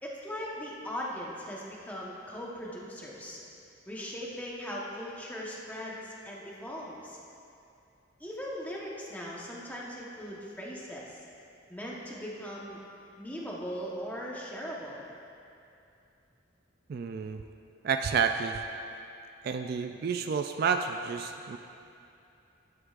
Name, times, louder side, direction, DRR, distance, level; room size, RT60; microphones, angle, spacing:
voice 1, 0.0-3.4 3.9-7.2 8.2-11.2 11.7-12.8 13.2-15.0, equal, 10° left, -4 dB, 1.1 m, -39 dB
voice 2, 16.9-17.4 17.8-18.6 19.4-21.6, right 6 dB, 50° right, 6 dB, 0.3 m, -30 dB
12.5 x 9.8 x 2.5 m, 2.6 s
head